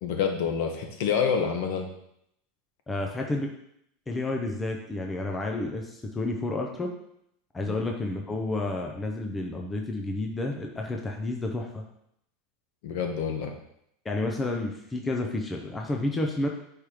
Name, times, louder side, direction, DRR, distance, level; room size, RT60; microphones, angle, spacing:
voice 1, 0.0-1.9 7.6-7.8 12.8-13.5, left 6 dB, 60° left, 4 dB, 1.0 m, -27 dB
voice 2, 2.9-3.5 4.1-6.9 7.5-11.8 14.0-16.5, left 2 dB, 10° left, 1 dB, 0.6 m, -30 dB
4.8 x 4.5 x 4.9 m, 0.75 s
supercardioid pair, 165°, 0 cm